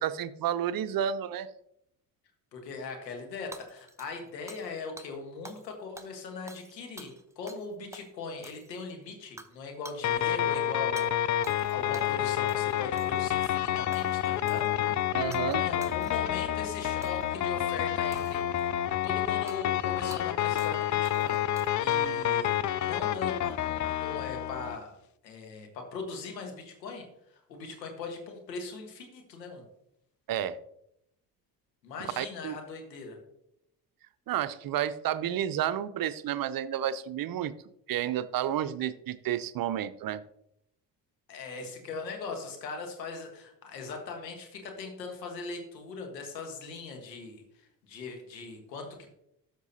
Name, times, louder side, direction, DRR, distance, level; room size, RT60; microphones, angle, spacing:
voice 1, 0.0-1.5 15.1-15.7 30.3-30.6 32.2-32.6 34.3-37.5 37.9-40.2, right 10 dB, 45° right, 14 dB, 0.6 m, -31 dB
voice 2, 2.5-15.1 15.6-18.7 19.0-23.5 23.9-24.9 25.2-29.6 31.8-33.2 41.3-49.1, left 4 dB, 90° left, 4 dB, 1.5 m, -40 dB
Hammer / Shatter, 3.5-4.7 5.0-5.1 5.4-5.7 6.0-7.7 7.9-8.1 8.4-8.9 9.4-9.6 9.8-10.0 11.0-11.1 11.4-12.2 12.5-12.7 13.0-13.6 13.9-14.7 15.3-15.6 15.8-16.4 17.0-17.3 18.1-18.7 19.5-19.6 20.1-20.2 20.6-20.8 21.0-21.9, right 2 dB, 5° right, 0.8 m, -49 dB
sound 1, 10.0-24.8, left 11 dB, 40° left, 0.5 m, -29 dB
12.5 x 6.2 x 2.8 m, 0.77 s
hypercardioid pair, 50°, 49 cm